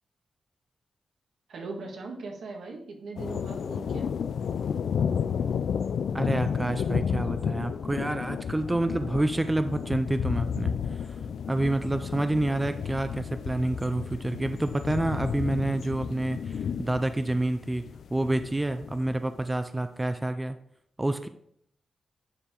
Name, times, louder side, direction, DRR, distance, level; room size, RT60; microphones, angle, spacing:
voice 1, 1.5-4.1, right 3 dB, 80° right, 1 dB, 1.7 m, -39 dB
sound 1, 3.2-19.2, left 7 dB, 80° left, 0.3 m, -32 dB
voice 2, 6.1-11.2 11.5-17.8 18.1-20.6 21.0-21.3, right 2 dB, 15° right, 9 dB, 0.3 m, -28 dB
10.0 x 4.6 x 3.7 m, 0.70 s
wide cardioid pair, 155°, 0 cm